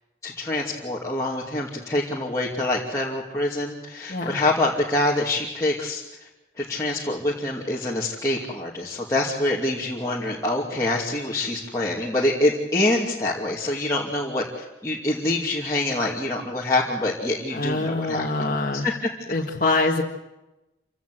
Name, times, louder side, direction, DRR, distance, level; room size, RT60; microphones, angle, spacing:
voice 1, 0.2-6.3 6.6-18.3 18.8-18.9, left 2 dB, 15° left, -6 dB, 2.6 m, -25 dB
voice 2, 17.5-18.9 19.3-20.0, left 2 dB, 45° left, -1 dB, 1.8 m, -24 dB
27.5 x 17.0 x 7.8 m, 1.0 s
head